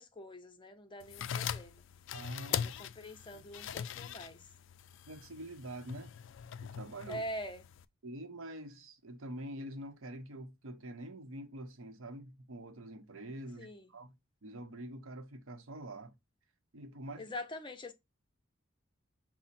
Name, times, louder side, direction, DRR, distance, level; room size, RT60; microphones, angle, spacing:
voice 1, 0.0-1.8 2.5-4.5 7.1-7.6 13.6-13.9 17.2-17.9, equal, 25° left, 0.6 m, -44 dB
sound 1, 1.0-7.8, left 8 dB, 60° left, 0.3 m, -41 dB
voice 2, 2.1-2.7 3.3-3.4 5.1-6.1 6.6-7.2 8.0-14.1 14.4-16.1 16.7-17.3, right 1 dB, 75° right, 0.8 m, -46 dB
5.9 x 2.1 x 4.1 m
head